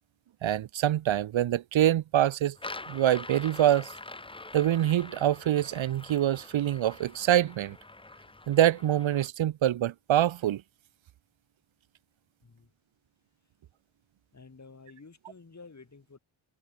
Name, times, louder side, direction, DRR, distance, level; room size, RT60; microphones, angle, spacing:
voice 1, 0.4-2.6 2.9-3.9 4.5-7.8 8.5-10.6, right 12 dB, 70° right, 0.7 m, -25 dB
sound 1, 2.6-9.3, left 2 dB, 10° left, 0.7 m, -45 dB
voice 2, 14.3-16.2, left 4 dB, 35° left, 7.5 m, -51 dB
wide cardioid pair, 165°, 50 cm